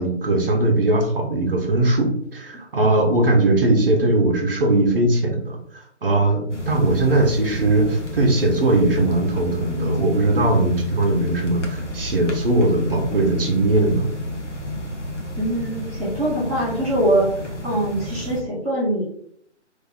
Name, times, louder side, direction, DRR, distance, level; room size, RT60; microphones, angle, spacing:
voice 1, 0.0-14.1, right 2 dB, 50° right, 2 dB, 1.0 m, -20 dB
sound 1, 6.5-18.4, equal, 80° left, 1.1 m, -31 dB
voice 2, 15.4-17.3 17.6-19.0, right 1 dB, ahead, -18 dB, 0.7 m, -22 dB
3.3 x 2.8 x 3.5 m, 0.67 s
figure-of-eight pair, 145°, 35 cm